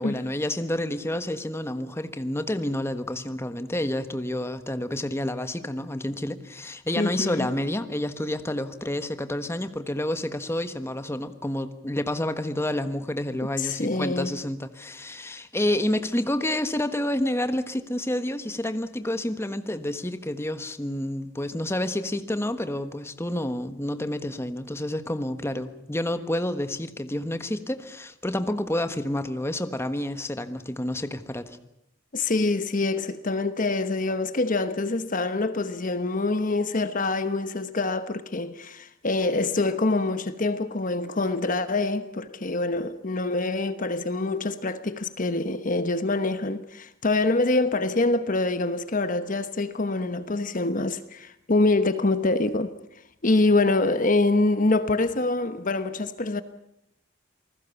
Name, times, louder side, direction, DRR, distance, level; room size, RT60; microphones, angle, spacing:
voice 1, 0.0-31.6, left 1 dB, 15° left, 1.3 m, -29 dB
voice 2, 7.0-7.5 13.6-14.3 32.1-52.7 53.2-56.4, left 2 dB, 45° left, 1.1 m, -25 dB
28.0 x 20.0 x 7.1 m
head